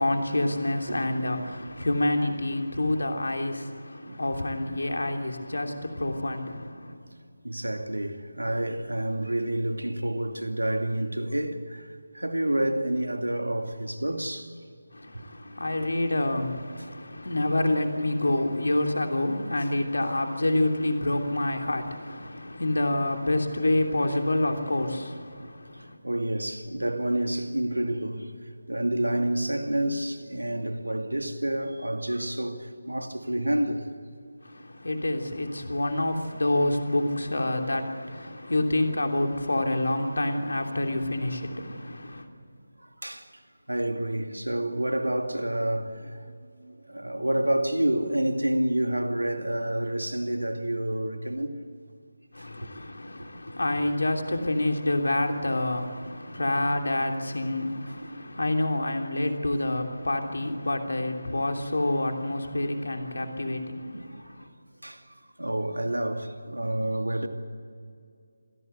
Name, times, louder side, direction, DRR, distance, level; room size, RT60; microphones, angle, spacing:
voice 1, 0.0-7.0 14.9-26.0 34.4-42.3 52.3-64.5, left 1 dB, 60° left, 3.1 m, -28 dB
voice 2, 7.4-14.5 15.1-15.2 15.7-15.8 19.6-19.7 25.4-25.5 26.0-28.3 28.7-33.9 42.8-43.3 43.7-51.5 52.4-52.7 58.0-58.2 63.9-64.3 64.8-65.0 65.4-67.3, right 1 dB, 75° right, 2.5 m, -29 dB
27.0 x 17.5 x 8.0 m
figure-of-eight pair, 155°, 0 cm